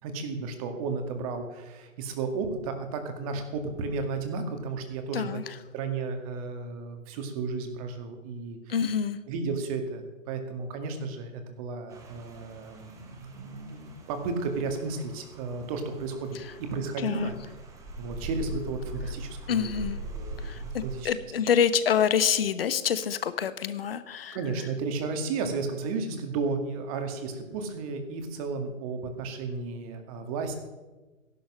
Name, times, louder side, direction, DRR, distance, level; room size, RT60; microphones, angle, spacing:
voice 1, 0.0-5.3 5.7-8.8 9.3-17.4 18.0-21.1 24.3-30.6, right 4 dB, 25° right, 5 dB, 2.1 m, -33 dB
voice 2, 5.1-5.5 8.7-9.2 17.0-17.3 19.5-20.0 20.4-24.4, left 7 dB, 45° left, 14 dB, 1.1 m, -27 dB
Rain, 11.9-21.0, right 1 dB, 10° right, 1.2 m, -41 dB
16.0 x 11.5 x 6.3 m, 1.2 s
figure-of-eight pair, 135°, 40 cm